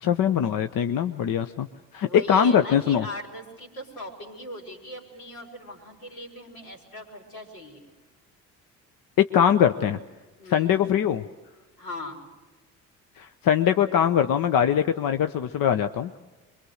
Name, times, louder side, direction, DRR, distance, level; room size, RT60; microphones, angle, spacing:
voice 1, 0.0-1.7 1.9-3.1 9.2-10.0 10.5-11.2 13.2-16.2, left 9 dB, 55° left, 9 dB, 0.9 m, -22 dB
voice 2, 2.0-7.9 10.4-10.8 11.8-12.3, left 1 dB, 80° left, 0 dB, 4.5 m, -39 dB
24.5 x 22.5 x 6.5 m, 1.2 s
hypercardioid pair, 55°, 42 cm